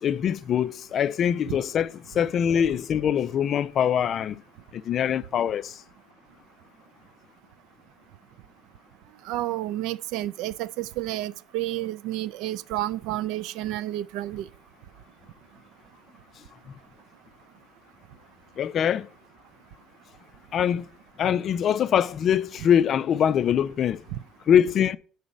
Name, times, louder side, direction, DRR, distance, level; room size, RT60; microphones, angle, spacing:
voice 1, 0.0-4.4 4.7-5.8 18.6-19.1 20.5-20.9 21.2-24.0 24.5-25.0, left 9 dB, 40° left, 0.3 m, -23 dB
voice 2, 9.3-14.4 24.1-24.2, right 15 dB, 90° right, 0.3 m, -30 dB
9.7 x 4.0 x 5.2 m
cardioid pair, 175°, 0 cm